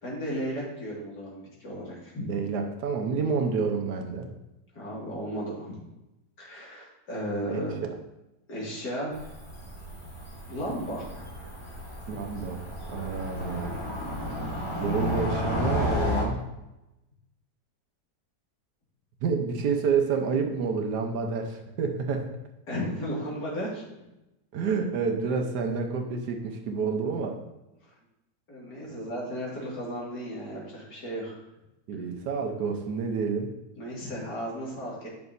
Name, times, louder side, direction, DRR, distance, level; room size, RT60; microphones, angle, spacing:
voice 1, 0.0-2.3 4.7-5.8 6.4-7.8 8.5-9.1 10.5-11.2 22.7-23.8 28.5-31.4 33.8-35.1, equal, 70° left, -5 dB, 2.6 m, -34 dB
voice 2, 2.3-4.3 7.5-7.9 12.1-12.6 12.9-13.7 14.8-16.5 19.2-22.3 24.5-27.4 31.9-33.5, right 5 dB, 70° right, 3 dB, 1.3 m, -29 dB
Cricket / Motor vehicle (road), 9.1-16.2, left 1 dB, 15° left, 1.7 m, -32 dB
9.0 x 5.9 x 2.6 m, 0.94 s
omnidirectional pair, 1.9 m